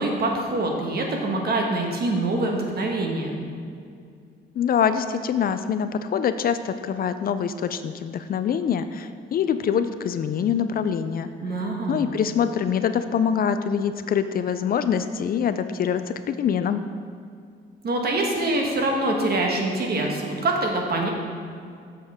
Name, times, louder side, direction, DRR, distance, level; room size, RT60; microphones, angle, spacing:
voice 1, 0.0-3.4 11.4-12.0 17.8-21.1, right 2 dB, 50° right, 1 dB, 1.4 m, -25 dB
voice 2, 4.6-11.3 11.9-16.8, left 7 dB, 50° left, 10 dB, 0.4 m, -24 dB
7.8 x 6.6 x 3.6 m, 2.3 s
cardioid pair, 90°, 20 cm